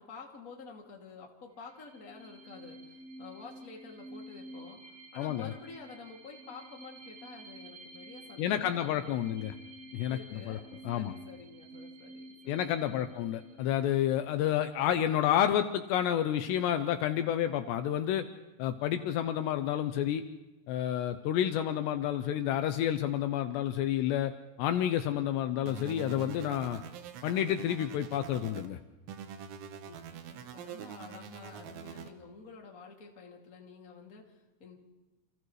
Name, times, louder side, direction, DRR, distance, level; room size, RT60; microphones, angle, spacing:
voice 1, 0.0-9.5 10.0-13.2 29.9-34.8, left 4 dB, 25° left, 0 dB, 2.0 m, -50 dB
sound 1, 1.6-15.0, right 1 dB, 60° right, 7.1 m, -51 dB
voice 2, 5.2-5.5 8.4-9.5 9.9-10.6 10.8-11.1 12.5-18.2 18.6-20.2 20.7-24.3 24.6-26.8 27.2-28.8, left 11 dB, 80° left, 8 dB, 2.8 m, -30 dB
sound 2, 25.7-28.7 29.1-32.1, right 8 dB, 85° right, 3.7 m, -45 dB
29.5 x 28.5 x 3.2 m, 1.1 s
omnidirectional pair, 5.3 m